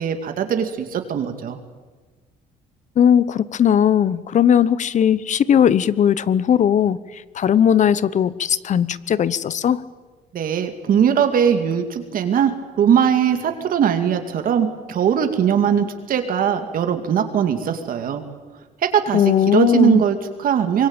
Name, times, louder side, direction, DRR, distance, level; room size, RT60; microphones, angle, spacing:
voice 1, 0.0-1.6 10.3-18.2 18.8-19.2 19.5-20.9, right 8 dB, 55° right, 6 dB, 2.3 m, -20 dB
voice 2, 3.0-9.8 19.1-20.0, left 9 dB, 45° left, 18 dB, 1.0 m, -18 dB
25.0 x 22.0 x 9.0 m, 1.3 s
cardioid pair, 110°, 17 cm